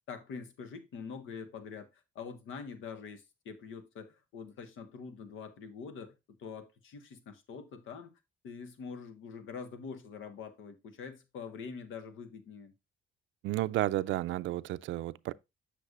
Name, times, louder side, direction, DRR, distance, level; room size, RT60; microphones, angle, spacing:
voice 1, 0.1-6.1 6.4-8.2 8.4-12.7, left 5 dB, 80° left, 1.2 m, -45 dB
voice 2, 13.4-15.3, right 15 dB, 75° right, 0.4 m, -32 dB
8.0 x 6.5 x 2.5 m
cardioid pair, 90°, 20 cm